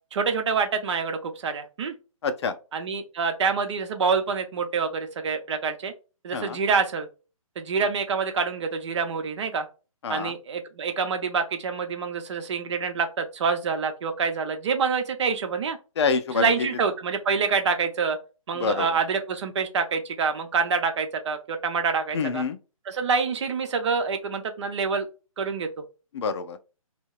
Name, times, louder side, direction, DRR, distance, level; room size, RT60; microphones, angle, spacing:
voice 1, 0.1-1.9 2.7-5.9 6.2-7.1 7.6-9.7 10.1-15.8 16.4-18.2 18.5-22.4 22.9-25.1 25.4-25.7, right 5 dB, 55° right, 0.6 m, -26 dB
voice 2, 2.2-2.5 6.3-6.6 10.0-10.3 16.0-16.7 18.5-19.0 22.1-22.6 26.1-26.6, left 5 dB, 50° left, 0.4 m, -26 dB
2.7 x 2.1 x 2.3 m
hypercardioid pair, 140°, 18 cm